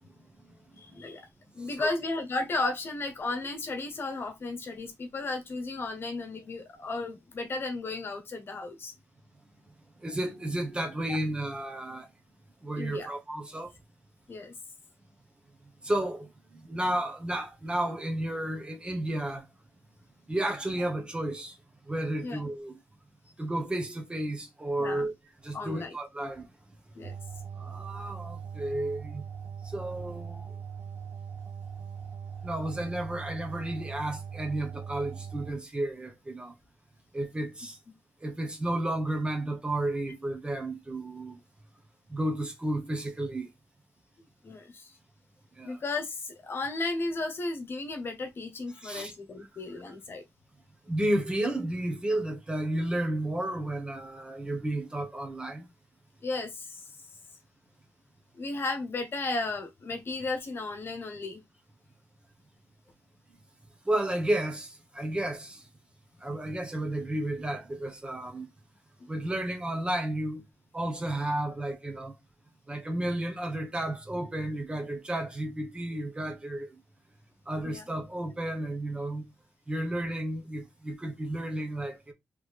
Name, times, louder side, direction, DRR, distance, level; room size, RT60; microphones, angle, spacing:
voice 1, 0.8-1.3 1.5-8.9 11.1-11.2 12.7-13.1 14.3-14.5 22.2-22.4 24.8-25.1 25.5-26.0 26.9-27.1 44.4-44.9 45.6-50.2 56.2-56.8 58.4-61.4 77.6-77.9, left 3 dB, 50° left, 1.1 m, -34 dB
voice 2, 1.6-1.9 10.0-12.1 12.6-13.7 15.8-19.4 20.3-21.6 21.9-22.8 23.4-25.1 25.4-26.5 27.6-29.2 29.6-30.5 32.4-36.5 37.1-37.8 38.2-41.4 42.1-43.5 45.6-45.8 48.8-49.1 50.9-55.7 63.8-65.6 66.2-68.5 69.1-70.4 70.7-72.1 72.7-76.7 77.5-79.3 79.7-82.1, right 1 dB, 20° right, 1.2 m, -32 dB
sound 1, 27.0-35.5, right 7 dB, 85° right, 1.3 m, -40 dB
3.8 x 3.3 x 3.3 m
cardioid pair, 90°, 5 cm